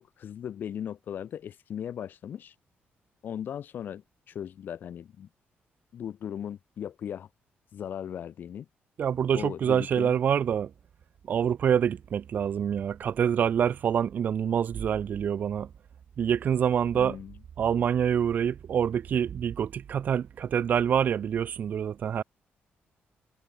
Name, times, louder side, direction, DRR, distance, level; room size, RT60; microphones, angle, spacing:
voice 1, 0.0-2.5 3.2-5.3 5.9-7.3 7.7-8.7 9.3-10.2 16.9-17.3, left 9 dB, 50° left, 2.7 m, -38 dB
voice 2, 9.0-10.7 11.3-15.7 16.2-17.2 17.6-22.2, right 8 dB, 45° right, 4.6 m, -26 dB
cardioid pair, 175°, 4 cm